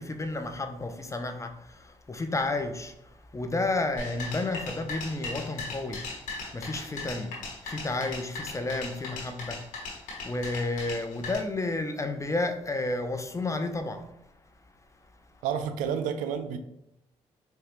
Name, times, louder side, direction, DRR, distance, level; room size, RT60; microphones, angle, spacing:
voice 1, 0.0-9.7 10.2-14.1, left 2 dB, 25° left, 0.6 m, -32 dB
sound 1, 4.0-11.3, left 3 dB, 80° left, 1.3 m, -38 dB
voice 2, 15.4-16.6, right 7 dB, 80° right, 0.4 m, -30 dB
4.8 x 2.3 x 3.0 m
hypercardioid pair, 50°, 13 cm